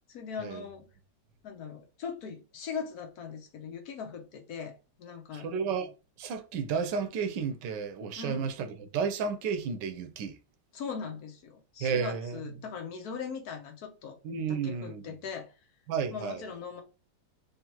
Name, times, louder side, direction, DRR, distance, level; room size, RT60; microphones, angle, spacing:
voice 1, 0.1-0.9 1.4-5.5 8.2-8.5 10.7-14.2 14.5-15.5 16.1-16.8, left 6 dB, 65° left, 1.2 m, -40 dB
voice 2, 5.3-5.9 6.2-10.4 11.8-12.4 14.2-15.1 15.9-16.4, right 6 dB, 85° right, 1.4 m, -32 dB
3.7 x 3.3 x 2.8 m
omnidirectional pair, 1.9 m